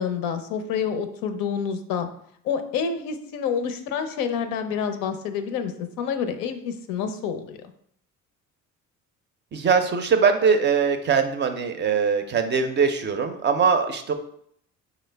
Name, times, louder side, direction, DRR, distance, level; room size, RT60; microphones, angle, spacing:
voice 1, 0.0-2.1 2.4-7.7, left 7 dB, 85° left, 8 dB, 0.5 m, -28 dB
voice 2, 9.5-14.1, right 6 dB, 35° right, 7 dB, 0.4 m, -21 dB
4.6 x 2.0 x 3.2 m, 0.68 s
cardioid pair, 85°, 33 cm